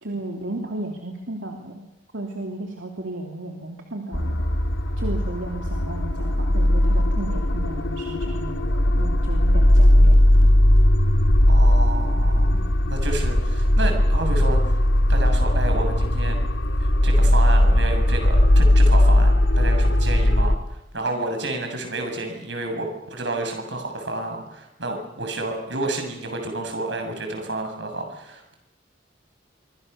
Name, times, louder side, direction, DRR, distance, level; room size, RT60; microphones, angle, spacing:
voice 1, 0.0-1.9 2.1-4.4 5.0-8.7 9.0-10.5, right 2 dB, 85° right, 2 dB, 3.0 m, -34 dB
sound 1, 4.1-20.6, left 1 dB, 85° left, 2.4 m, -18 dB
voice 2, 11.5-14.8 15.1-16.4 16.8-28.5, right 2 dB, 70° right, 4 dB, 7.2 m, -30 dB
26.0 x 25.5 x 6.9 m, 0.92 s
head